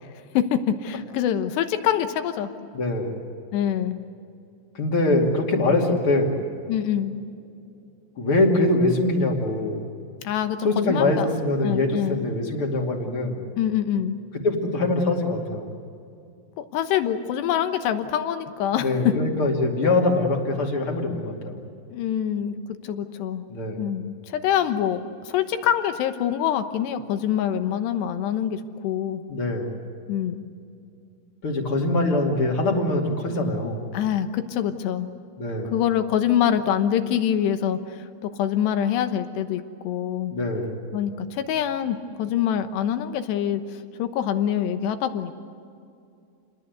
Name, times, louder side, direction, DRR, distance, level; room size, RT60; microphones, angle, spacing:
voice 1, 0.3-2.5 3.5-4.0 6.7-7.2 10.2-11.3 11.6-12.2 13.6-14.2 16.6-19.1 21.9-22.6 22.8-23.4 23.8-29.2 30.1-30.4 33.9-35.1 35.7-40.3 40.9-45.3, left 10 dB, 70° left, 8 dB, 2.8 m, -25 dB
voice 2, 2.7-3.2 4.7-6.4 8.2-9.8 10.6-13.5 14.4-15.7 18.7-21.6 23.5-23.9 29.3-29.8 31.4-33.8 35.4-35.7 40.3-40.8, left 2 dB, 35° left, 1 dB, 2.3 m, -23 dB
29.0 x 21.0 x 8.1 m, 2.5 s
omnidirectional pair, 5.9 m